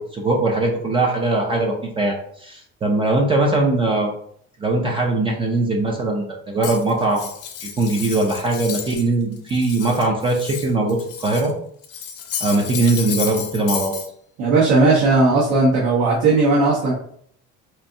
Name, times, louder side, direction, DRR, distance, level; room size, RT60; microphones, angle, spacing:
voice 1, 0.0-4.2 4.6-7.3 7.6-11.5 12.4-13.9, right 2 dB, 20° right, 0 dB, 0.3 m, -21 dB
Cutlery silverware, 6.6-9.1 9.4-11.5 11.8-14.1, left 8 dB, 50° left, 0.6 m, -32 dB
voice 2, 14.4-16.9, right 3 dB, 75° right, -5 dB, 1.1 m, -16 dB
4.3 x 2.6 x 2.6 m, 0.65 s
cardioid pair, 165°, 29 cm